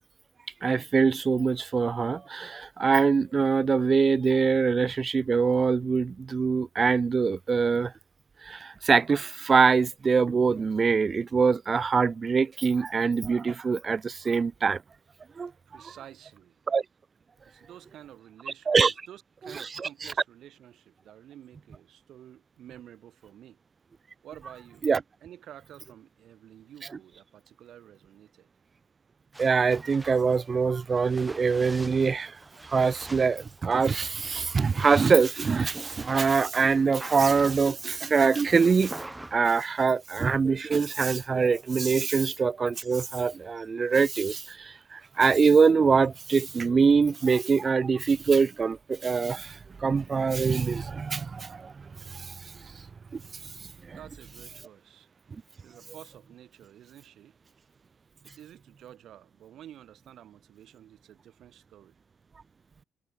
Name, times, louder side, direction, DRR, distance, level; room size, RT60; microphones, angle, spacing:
voice 1, 0.6-7.9 8.4-14.8 15.4-15.5 16.7-16.8 18.7-18.9 19.5-20.1 24.8-25.0 29.4-32.3 32.6-38.9 39.3-51.7 52.1-52.3 53.1-53.2 53.9-54.0, right 5 dB, 35° right, 0.4 m, -24 dB
voice 2, 15.7-16.6 17.5-23.6 24.2-24.9 25.2-28.5 53.9-55.1 55.6-57.3 58.2-62.0, right 11 dB, 75° right, 2.4 m, -50 dB
sound 1, 29.3-39.4, right 1 dB, 10° right, 1.5 m, -44 dB
cardioid pair, 90°, 0 cm